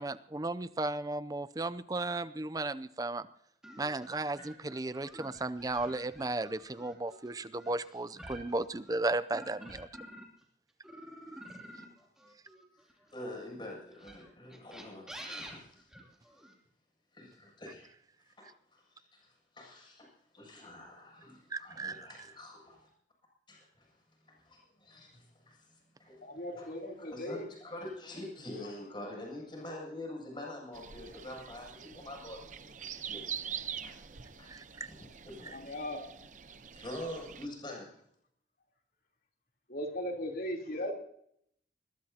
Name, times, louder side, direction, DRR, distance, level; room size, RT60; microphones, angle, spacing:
voice 1, 0.0-3.3 3.8-9.9 21.5-22.1 34.5-34.9, right 2 dB, 20° right, 15 dB, 0.5 m, -35 dB
sound 1, 3.6-10.4 10.8-13.2 13.9-16.5, equal, 5° right, 2.8 m, -49 dB
voice 2, 13.1-15.9 17.1-17.9 18.4-19.3 19.5-22.9 23.5-23.9 24.3-26.2 26.5-26.7 27.0-33.2 33.8-34.0 34.4-34.5 34.9-35.6 36.7-37.9, left 1 dB, 25° left, -1 dB, 7.5 m, -46 dB
voice 3, 26.2-27.5 35.5-36.0 39.7-40.9, left 1 dB, 55° left, 1 dB, 3.5 m, -37 dB
sound 2, 30.7-37.5, right 8 dB, 45° right, 0.8 m, -44 dB
21.5 x 21.0 x 2.9 m, 0.70 s
head